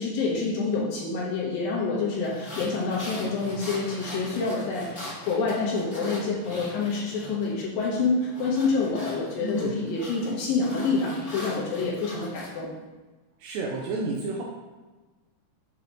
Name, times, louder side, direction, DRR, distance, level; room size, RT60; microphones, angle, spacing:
voice 1, 0.0-12.7, left 4 dB, 90° left, -5 dB, 2.0 m, -27 dB
sound 1, 2.2-7.5 7.8-12.5, left 1 dB, 70° left, 0.6 m, -40 dB
voice 2, 9.4-9.8 13.4-14.4, right 2 dB, 85° right, -1 dB, 2.5 m, -30 dB
7.7 x 5.3 x 2.9 m, 1.2 s
omnidirectional pair, 5.5 m